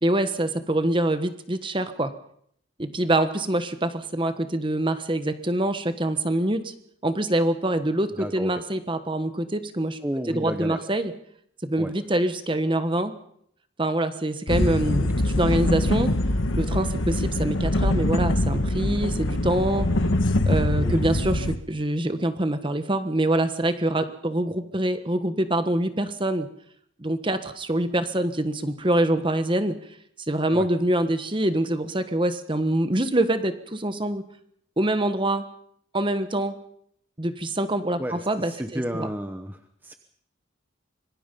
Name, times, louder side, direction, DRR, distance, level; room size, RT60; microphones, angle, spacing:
voice 1, 0.0-2.1 2.8-6.7 7.0-10.0 10.3-11.1 11.6-13.1 13.8-16.1 16.5-19.9 20.4-26.5 27.0-29.8 30.3-34.2 34.8-35.4 35.9-36.5 37.2-39.1, right 1 dB, 25° right, 10 dB, 1.3 m, -25 dB
voice 2, 8.1-8.5 10.0-10.8 11.8-11.9 20.8-21.0 30.5-30.7 38.0-39.9, equal, 10° right, 6 dB, 1.0 m, -32 dB
sound 1, 14.5-21.6, left 1 dB, 80° left, 1.4 m, -23 dB
25.5 x 21.5 x 5.4 m, 0.69 s
head